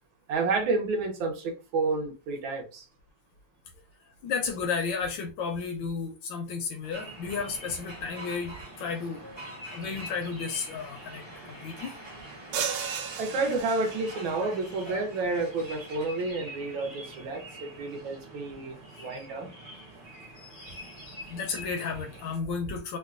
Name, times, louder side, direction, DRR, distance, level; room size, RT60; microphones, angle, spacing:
voice 1, 0.3-2.9 13.2-19.7, right 3 dB, 70° right, 1.5 m, -30 dB
voice 2, 4.2-9.2 9.7-12.0 19.1-19.2 20.4-23.0, left 5 dB, 75° left, 1.2 m, -33 dB
sound 1, 6.8-16.3, right 1 dB, 30° right, 0.4 m, -47 dB
sound 2, 6.9-22.4, right 1 dB, 50° right, 1.6 m, -46 dB
sound 3, 12.5-14.3, right 7 dB, 90° right, 1.5 m, -34 dB
3.7 x 2.2 x 2.4 m
omnidirectional pair, 2.3 m